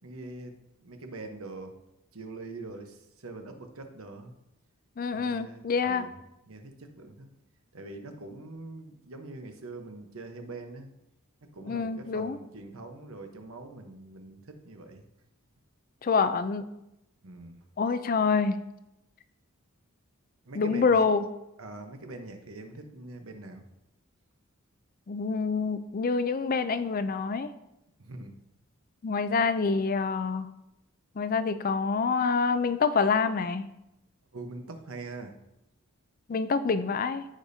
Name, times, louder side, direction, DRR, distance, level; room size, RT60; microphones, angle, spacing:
voice 1, 0.0-1.8 2.1-4.3 5.1-6.1 6.5-7.3 7.7-10.9 11.4-15.0 17.2-17.6 20.4-21.0 21.6-23.7 28.0-28.4 34.3-35.4, right 2 dB, 70° right, 5 dB, 1.0 m, -43 dB
voice 2, 5.0-6.1 11.7-12.4 16.0-16.6 17.8-18.6 20.6-21.2 25.1-27.5 29.0-30.5 31.2-33.7 36.3-37.3, left 5 dB, 40° left, 12 dB, 0.4 m, -26 dB
14.0 x 5.1 x 2.7 m, 0.89 s
head